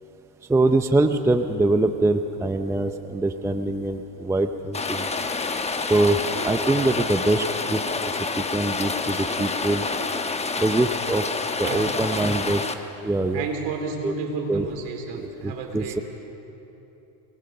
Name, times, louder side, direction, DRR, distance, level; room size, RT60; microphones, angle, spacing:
voice 1, 0.5-5.1 5.8-7.8 8.4-9.9 10.6-11.3 11.6-12.6 13.0-13.5 14.0-14.1 14.5-14.7 15.1-16.0, right 2 dB, 5° right, 8 dB, 0.5 m, -23 dB
Rain, 4.7-12.7, left 4 dB, 15° left, 1.0 m, -28 dB
voice 2, 11.6-11.9 13.3-16.0, right 5 dB, 60° right, 3 dB, 4.1 m, -31 dB
24.5 x 20.0 x 6.6 m, 3.0 s
supercardioid pair, 125°, 49 cm